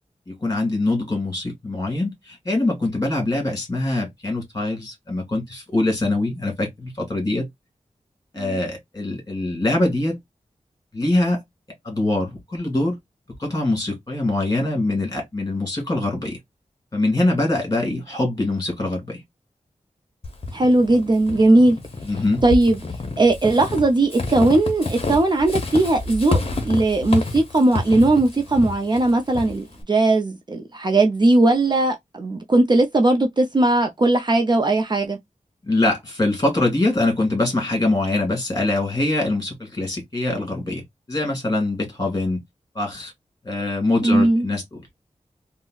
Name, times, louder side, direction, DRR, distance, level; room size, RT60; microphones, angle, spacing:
voice 1, 0.3-7.5 8.3-10.2 10.9-11.4 11.8-13.0 13.4-16.4 16.9-19.2 22.1-22.4 35.6-42.4 42.8-43.1 43.4-44.6, left 2 dB, 30° left, 1.9 m, -23 dB
Walk footsteps / Squeak, 20.2-29.8, left 3 dB, 45° left, 0.7 m, -29 dB
voice 2, 20.5-21.8 22.4-22.8 23.2-35.2 44.0-44.5, right 2 dB, 35° right, 0.4 m, -18 dB
3.9 x 2.0 x 2.3 m
wide cardioid pair, 95°, 13 cm